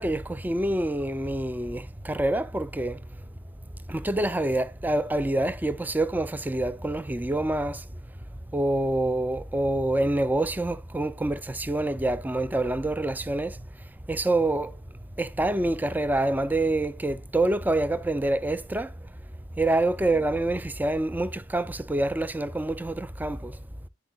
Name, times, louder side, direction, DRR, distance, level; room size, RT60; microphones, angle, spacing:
voice 1, 0.0-3.0 3.9-7.9 8.5-13.7 14.1-14.8 15.2-18.9 19.6-23.6, right 1 dB, 10° right, 0.4 m, -26 dB
10.0 x 8.0 x 2.3 m
head